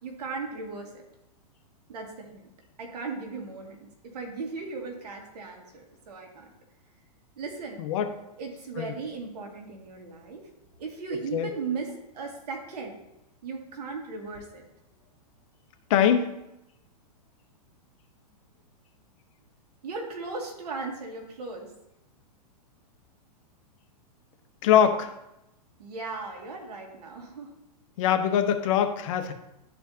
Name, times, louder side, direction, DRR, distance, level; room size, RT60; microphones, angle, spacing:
voice 1, 0.0-0.9 1.9-2.4 2.8-6.5 7.4-7.8 8.4-10.5 10.8-13.0 13.4-14.6 19.8-21.7 25.8-27.5, right 4 dB, 75° right, 2 dB, 1.9 m, -37 dB
voice 2, 15.9-16.4 24.6-25.1 28.0-29.3, left 9 dB, 50° left, 7 dB, 0.8 m, -23 dB
12.5 x 4.4 x 2.7 m, 0.90 s
hypercardioid pair, 135°, 21 cm